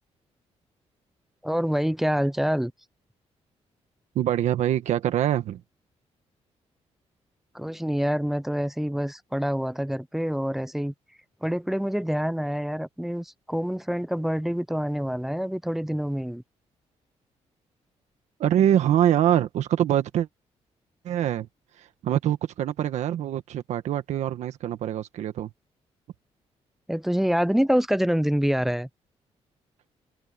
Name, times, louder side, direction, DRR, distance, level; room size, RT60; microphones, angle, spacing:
voice 1, 1.4-2.7 7.5-10.9 11.4-16.4 26.9-28.9, equal, 5° right, 0.4 m, -26 dB
voice 2, 4.1-5.6 18.4-20.3 21.0-21.5 21.7-25.5, right 11 dB, 80° right, 1.5 m, -24 dB
cardioid pair, 150°, 12 cm